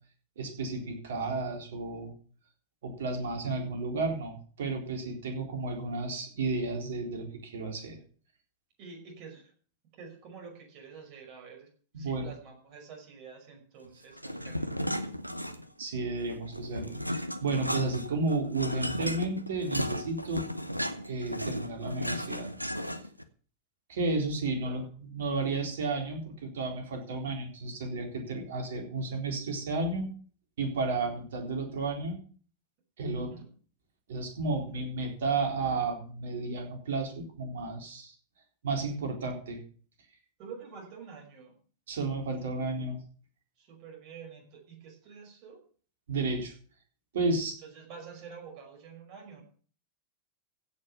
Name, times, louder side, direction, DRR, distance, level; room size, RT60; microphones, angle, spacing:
voice 1, 0.4-2.1 2.8-8.0 11.9-12.3 15.8-20.4 21.1-22.5 23.9-30.1 30.6-32.2 33.0-33.3 34.1-38.1 38.6-39.6 41.9-43.0 46.1-46.5 47.1-47.6, right 3 dB, 60° right, 2 dB, 4.0 m, -32 dB
voice 2, 8.8-9.5 10.0-11.7 12.0-14.7 24.6-24.9 33.1-33.5 34.4-34.6 40.4-41.5 43.6-45.6 47.6-49.4, right 6 dB, 45° right, 2 dB, 5.7 m, -48 dB
sound 1, 14.2-15.9 16.2-23.2, equal, 90° right, 0.9 m, -35 dB
16.0 x 6.4 x 7.0 m, 0.43 s
figure-of-eight pair, 90°, 0 cm